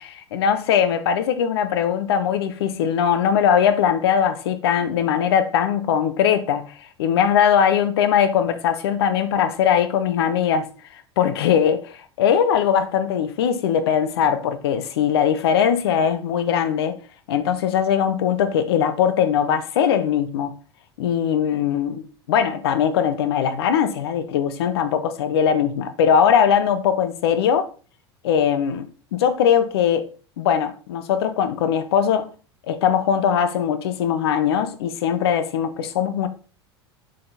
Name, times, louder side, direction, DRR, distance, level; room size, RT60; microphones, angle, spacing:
voice 1, 0.3-6.7 7.0-10.7 11.2-17.0 17.3-20.6 21.0-27.7 28.2-28.8 29.2-30.1 30.4-32.3 32.7-36.3, left 8 dB, 65° left, 0.8 m, -20 dB
6.5 x 3.8 x 3.9 m
figure-of-eight pair, 80°, 14 cm